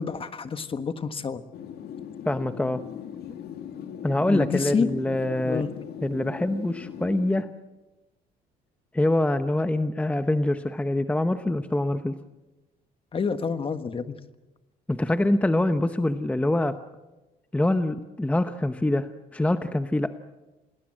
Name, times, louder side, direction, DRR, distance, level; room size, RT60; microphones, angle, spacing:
voice 1, 0.0-1.4 4.3-4.9 5.4-5.7 13.1-14.2, left 5 dB, 30° left, 10 dB, 1.5 m, -28 dB
sound 1, 1.5-7.4, left 9 dB, 70° left, 1.9 m, -39 dB
voice 2, 2.3-2.8 4.0-5.6 6.0-7.5 8.9-12.2 14.9-16.8 17.5-20.1, left 1 dB, 10° left, 10 dB, 0.9 m, -25 dB
28.5 x 19.0 x 7.6 m, 1.1 s
cardioid pair, 110°, 17 cm